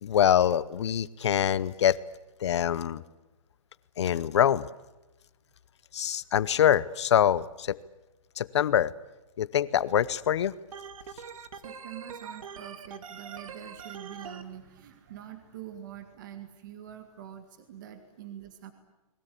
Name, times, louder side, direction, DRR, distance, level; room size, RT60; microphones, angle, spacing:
voice 1, 0.0-2.0 2.4-3.0 4.0-4.7 5.9-7.8 8.4-8.9 9.4-10.5, left 10 dB, 50° left, 18 dB, 0.9 m, -24 dB
Organ, 10.7-14.4, right 6 dB, 70° right, 2.2 m, -43 dB
voice 2, 11.5-18.7, right 10 dB, 35° right, 7 dB, 2.0 m, -45 dB
30.0 x 21.5 x 8.5 m, 1.0 s
hypercardioid pair, 180°, 18 cm